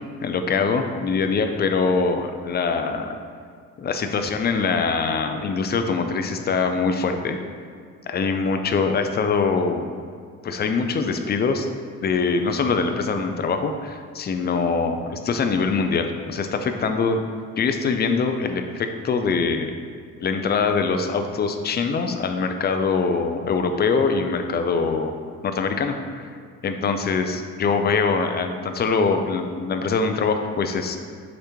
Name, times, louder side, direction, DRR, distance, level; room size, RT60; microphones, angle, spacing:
voice 1, 0.2-3.2 3.8-7.4 8.1-9.8 10.4-11.7 12.0-17.2 17.6-19.7 20.2-25.1 25.4-26.3 26.6-31.0, left 4 dB, 35° left, 6 dB, 0.4 m, -23 dB
5.1 x 3.2 x 3.0 m, 2.1 s
cardioid pair, 90°, 30 cm